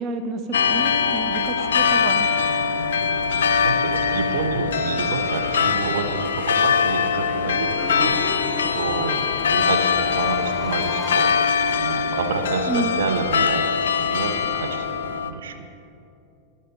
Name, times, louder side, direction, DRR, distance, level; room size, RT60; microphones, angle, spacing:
voice 1, 0.0-2.3 12.7-12.9, right 2 dB, 40° right, 7 dB, 0.6 m, -29 dB
sound 1, 0.5-15.3, left 6 dB, 70° left, 0.5 m, -22 dB
sound 2, 3.4-12.6, left 1 dB, 10° right, 2.3 m, -47 dB
voice 2, 3.6-11.3 11.7-14.8 15.2-15.7, right 5 dB, 70° right, 6 dB, 0.8 m, -29 dB
sound 3, 7.8-12.4, left 4 dB, 10° left, 0.6 m, -36 dB
13.5 x 5.6 x 5.2 m, 2.7 s
figure-of-eight pair, 90°, 0 cm